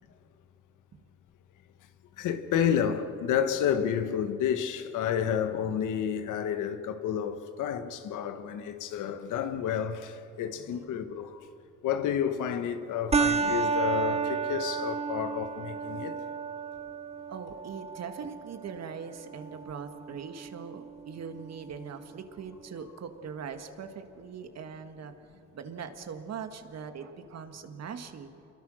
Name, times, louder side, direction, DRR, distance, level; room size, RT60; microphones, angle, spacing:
voice 1, 2.2-11.5 11.8-16.1, left 8 dB, 85° left, 1.5 m, -30 dB
voice 2, 10.5-11.0 17.3-25.1 25.5-28.3, right 6 dB, 60° right, 1.9 m, -41 dB
sound 1, 13.1-22.1, right 5 dB, 20° right, 0.8 m, -33 dB
27.0 x 22.5 x 6.4 m
cardioid pair, 90°, 30 cm